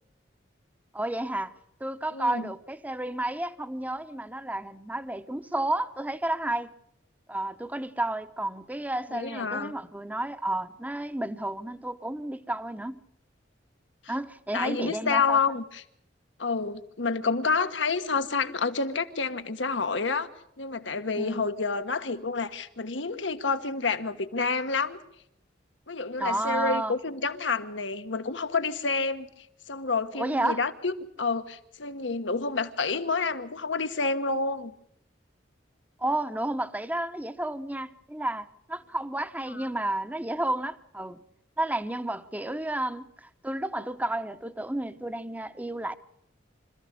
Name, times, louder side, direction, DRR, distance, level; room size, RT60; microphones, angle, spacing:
voice 1, 0.9-1.5 1.8-6.7 7.3-13.0 14.1-15.4 21.2-21.4 26.2-27.0 30.2-30.6 36.0-41.2 41.6-45.9, right 1 dB, 10° right, 0.8 m, -31 dB
voice 2, 2.1-2.5 9.1-9.7 14.5-15.8 16.4-20.3 20.6-25.0 25.9-29.3 29.7-34.7 39.5-39.7, left 4 dB, 85° left, 1.3 m, -29 dB
25.5 x 14.0 x 8.3 m
head